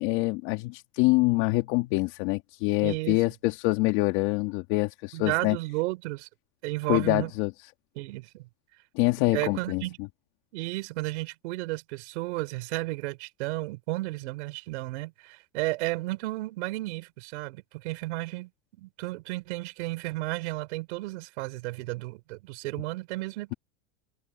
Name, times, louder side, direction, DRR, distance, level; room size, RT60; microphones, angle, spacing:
voice 1, 0.0-5.6 6.9-7.5 9.0-9.8, left 23 dB, 50° left, 2.7 m, -25 dB
voice 2, 2.8-3.2 5.1-6.3 6.6-7.3 8.0-8.5 9.2-10.0 10.5-18.5 18.8-23.6, right 22 dB, 65° right, 4.1 m, -33 dB
supercardioid pair, 155°, 36 cm